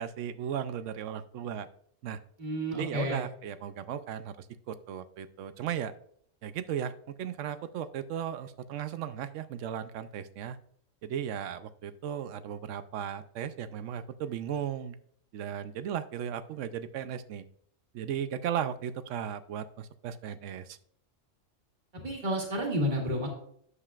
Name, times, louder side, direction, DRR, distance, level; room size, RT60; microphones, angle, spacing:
voice 1, 0.0-1.7 2.0-2.2 2.7-5.9 6.4-10.6 11.0-15.0 15.3-17.4 17.9-20.8, right 9 dB, 75° right, 13 dB, 0.9 m, -36 dB
voice 2, 2.4-3.2 21.9-23.3, equal, 40° right, 0 dB, 1.8 m, -30 dB
9.7 x 7.5 x 2.4 m, 0.65 s
omnidirectional pair, 1.3 m